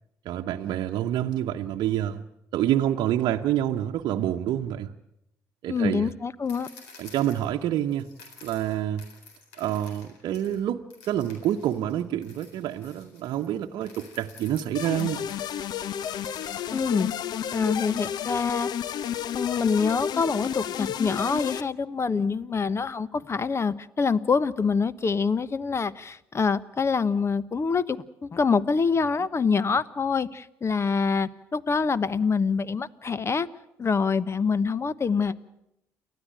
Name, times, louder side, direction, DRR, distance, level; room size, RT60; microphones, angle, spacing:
voice 1, 0.2-2.2 2.5-4.9 5.6-6.1 7.0-8.1 8.4-9.0 9.6-15.3, right 11 dB, 65° right, 3 dB, 0.9 m, -27 dB
voice 2, 5.7-6.7 16.7-17.1 17.5-18.7 19.3-33.5 33.8-35.5, left 5 dB, 35° left, 18 dB, 1.1 m, -25 dB
sound 1, 6.5-10.6 10.9-17.7, left 4 dB, 80° left, 4.0 m, -52 dB
sound 2, 14.7-21.6, left 9 dB, 60° left, 0.9 m, -31 dB
29.5 x 13.0 x 8.9 m, 0.84 s
hypercardioid pair, 50°, 8 cm